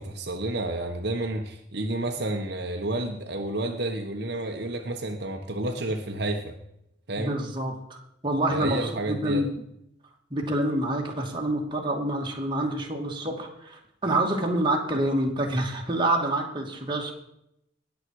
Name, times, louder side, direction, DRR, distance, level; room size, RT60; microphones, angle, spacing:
voice 1, 0.0-6.5 7.1-7.4 8.5-9.4, right 2 dB, 60° right, 3 dB, 1.3 m, -30 dB
voice 2, 7.2-8.0 8.2-9.5 10.3-17.1, right 1 dB, 25° right, 0 dB, 2.5 m, -27 dB
20.0 x 7.6 x 4.8 m, 0.78 s
head